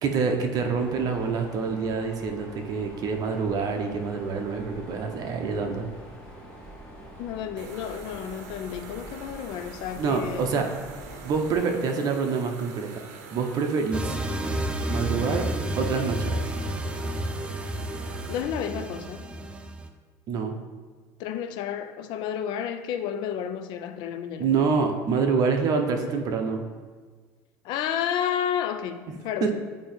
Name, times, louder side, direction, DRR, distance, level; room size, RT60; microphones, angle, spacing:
voice 1, 0.0-5.9 10.0-10.6 11.2-12.9 13.3-14.2 14.9-15.5 15.8-16.4 20.3-20.5 24.4-26.6 29.4-29.5, right 5 dB, 50° right, 0.8 m, -26 dB
Mechanisms, 0.5-11.6, equal, 10° left, 1.7 m, -45 dB
voice 2, 7.2-10.6 18.3-19.3 21.2-24.7 27.6-29.5, left 9 dB, 65° left, 0.5 m, -31 dB
sound 1, 7.6-18.4, right 6 dB, 90° right, 0.7 m, -45 dB
sound 2, 13.9-19.9, right 1 dB, 15° right, 0.4 m, -31 dB
8.5 x 2.9 x 4.4 m
supercardioid pair, 120°, 8 cm